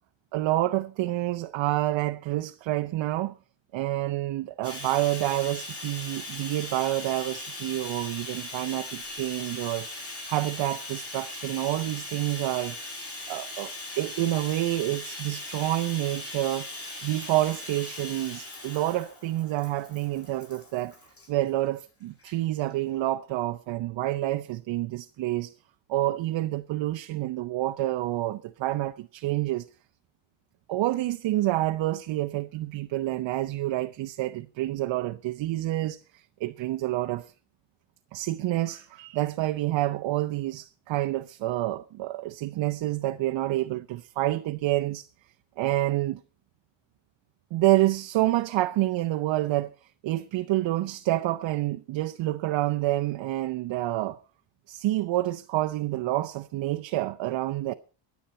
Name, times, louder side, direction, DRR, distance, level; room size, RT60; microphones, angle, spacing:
voice 1, 0.3-3.4 3.7-9.9 10.3-12.8 13.3-16.7 17.0-21.0 21.3-25.5 25.9-29.6 30.7-37.3 38.1-45.1 45.6-46.2 47.5-49.7 50.0-54.2 54.7-57.7, right 16 dB, 70° right, 0.8 m, -28 dB
Bathtub (filling or washing), 4.6-21.3 22.2-22.3 22.7-22.8, left 2 dB, 30° left, 7.8 m, -39 dB
23.5 x 8.3 x 4.2 m
cardioid pair, 120°, 46 cm